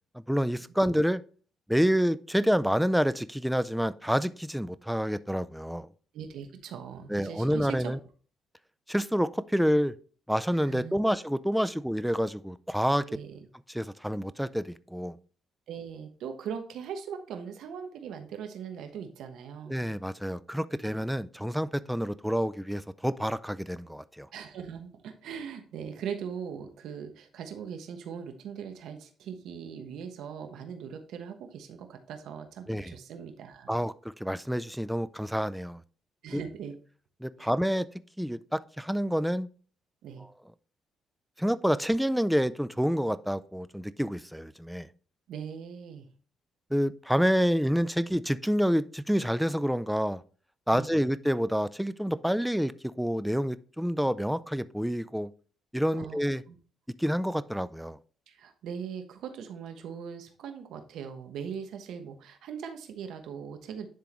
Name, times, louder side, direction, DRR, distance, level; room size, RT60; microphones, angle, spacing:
voice 1, 0.3-1.2 1.7-5.9 7.1-8.0 8.9-9.9 10.3-13.1 13.7-15.2 19.7-24.3 32.7-32.9 33.7-35.8 36.3-36.4 37.2-37.9 38.2-39.5 41.4-44.9 46.7-50.2 50.7-55.3 55.7-56.4 57.0-58.0, equal, ahead, 0.4 m, -28 dB
voice 2, 6.1-7.9 10.6-11.0 11.6-11.7 13.1-13.5 15.7-19.9 20.7-20.8 24.3-33.8 36.2-36.7 37.4-37.5 40.0-40.3 45.3-46.1 50.7-51.0 55.9-56.2 56.5-56.6 58.3-63.9, right 7 dB, 80° right, 1.1 m, -40 dB
10.5 x 3.8 x 3.0 m
cardioid pair, 90°, 0 cm